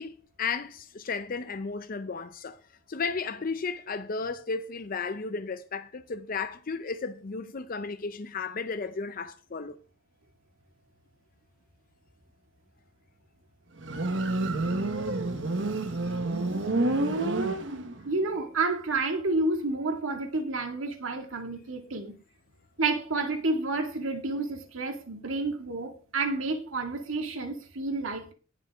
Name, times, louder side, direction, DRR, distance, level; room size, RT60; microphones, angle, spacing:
voice 1, 0.0-2.6 2.9-9.8, left 4 dB, 45° left, 0.5 m, -34 dB
Motorcycle, 13.8-18.2, right 2 dB, 65° right, 1.0 m, -28 dB
voice 2, 18.1-22.1 22.8-28.3, right 3 dB, 90° right, 2.0 m, -30 dB
18.5 x 6.6 x 3.5 m
head